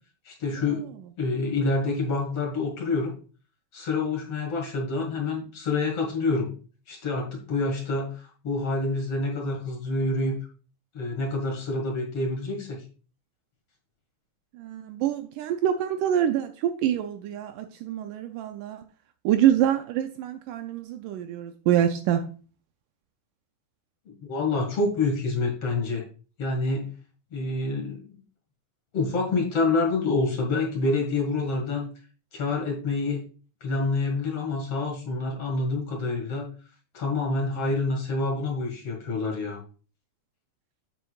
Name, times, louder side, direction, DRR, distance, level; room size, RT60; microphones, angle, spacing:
voice 1, 0.3-0.9 1.2-3.1 3.7-6.5 6.9-10.4 10.9-12.8 24.1-26.0 26.4-26.9 27.3-28.2 28.9-31.9 32.3-33.2 33.6-36.5 36.9-39.6, left 3 dB, 50° left, 2.4 m, -27 dB
voice 2, 14.6-18.8 19.3-22.2, right 10 dB, 80° right, 1.9 m, -25 dB
8.8 x 8.0 x 2.3 m
omnidirectional pair, 4.1 m